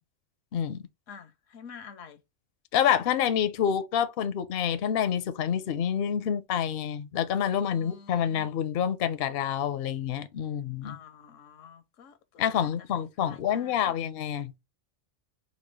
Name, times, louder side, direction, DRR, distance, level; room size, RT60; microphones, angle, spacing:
voice 1, 0.5-0.8 2.7-11.0 12.4-14.5, left 9 dB, 60° left, 0.7 m, -27 dB
voice 2, 1.1-2.2 7.6-8.5 10.8-14.0, left 6 dB, 85° left, 1.1 m, -49 dB
4.2 x 2.3 x 4.6 m
omnidirectional pair, 1.3 m